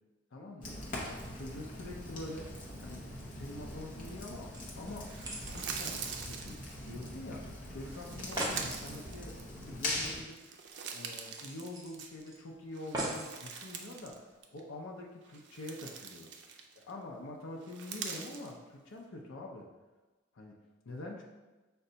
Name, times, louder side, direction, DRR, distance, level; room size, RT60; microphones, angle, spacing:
voice 1, 0.3-0.7 1.2-3.1 3.4-5.2 5.5-10.4 10.9-16.5 16.8-19.7 20.3-20.6 20.9-21.2, left 2 dB, 90° left, 0 dB, 0.6 m, -45 dB
Fire, 0.6-10.2, left 1 dB, 40° left, 0.8 m, -42 dB
sound 1, 4.5-7.2 7.4-7.5 7.9-8.0 8.1-8.7 10.2-10.3 10.6-10.7 11.3-12.3 12.9-13.3 14.1-14.2, right 1 dB, 20° right, 0.6 m, -40 dB
sound 2, 5.1-7.1 7.8-9.8 10.2-12.4 12.7-14.2 14.4-14.6 15.2-16.9 17.6-18.5, right 6 dB, 65° right, 0.4 m, -44 dB
5.4 x 2.3 x 3.9 m, 1.2 s
head